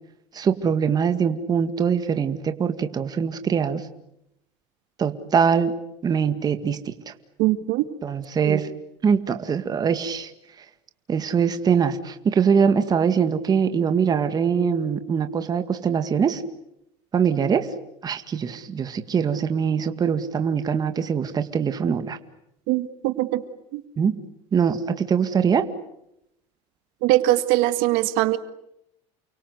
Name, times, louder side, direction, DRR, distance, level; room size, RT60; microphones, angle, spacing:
voice 1, 0.3-3.9 5.0-5.8 6.0-7.1 8.0-8.7 9.0-10.3 11.1-16.4 17.1-17.7 18.0-22.2 24.0-24.2 24.5-25.7, right 6 dB, 25° right, 8 dB, 2.0 m, -22 dB
voice 2, 7.4-7.9 8.4-8.6 22.7-23.4 23.7-23.8 27.0-28.4, right 16 dB, 75° right, 10 dB, 2.0 m, -21 dB
30.0 x 23.5 x 8.1 m, 0.81 s
cardioid pair, 135°, 15 cm